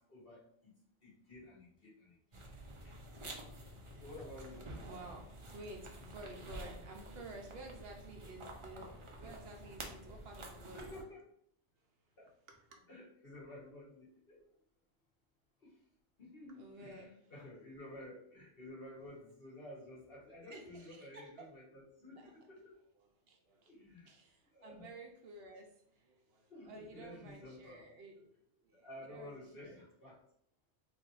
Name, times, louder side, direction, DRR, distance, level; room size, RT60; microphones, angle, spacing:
voice 1, 0.0-2.4 2.8-3.0 3.9-4.7 8.8-8.9 10.7-11.2 12.2-12.3 12.9-14.4 15.6-15.8 16.2-22.7 23.7-24.1 24.5-24.9 26.5-27.8 28.7-30.2, left 1 dB, 55° left, -6 dB, 1.6 m, -52 dB
sound 1, 2.3-11.0, right 1 dB, 40° right, 0.5 m, -50 dB
voice 2, 4.4-11.0 12.5-12.8 16.5-17.3 20.4-21.5 22.0-22.5 23.0-23.7 24.0-28.3 28.6-29.8, right 2 dB, 65° right, 2 dB, 0.9 m, -53 dB
3.2 x 2.6 x 3.9 m, 0.66 s
omnidirectional pair, 1.2 m